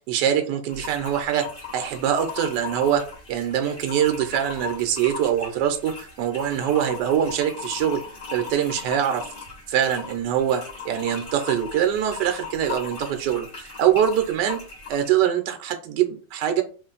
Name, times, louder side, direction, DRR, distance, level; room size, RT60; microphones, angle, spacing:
voice 1, 0.1-1.5 1.7-8.0 8.3-9.3 9.7-14.6 14.9-16.6, right 9 dB, 80° right, 7 dB, 1.2 m, -23 dB
sound 1, 0.7-15.1, left 5 dB, 35° left, 1.3 m, -38 dB
3.0 x 2.5 x 3.8 m, 0.38 s
omnidirectional pair, 1.9 m